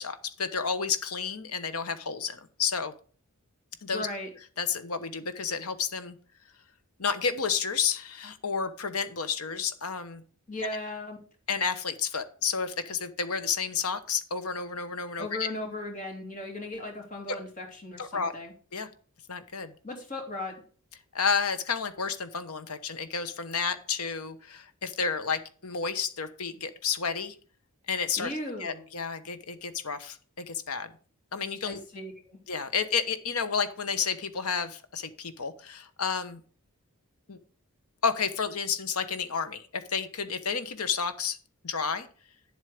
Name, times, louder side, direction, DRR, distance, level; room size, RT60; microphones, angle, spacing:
voice 1, 0.0-2.9 3.8-4.1 4.6-6.2 7.0-10.2 10.6-10.8 11.5-15.5 18.0-18.3 18.7-18.9 19.3-19.7 21.1-27.4 27.9-28.3 28.6-30.9 31.3-31.8 32.5-36.4 37.3-37.4 38.0-41.4 41.6-42.1, left 6 dB, 85° left, 11 dB, 1.1 m, -31 dB
voice 2, 3.9-4.3 10.5-11.2 15.2-18.5 19.8-20.6 28.2-28.8 31.6-32.4, left 1 dB, 35° left, 2 dB, 2.9 m, -37 dB
10.0 x 7.7 x 5.1 m, 0.42 s
head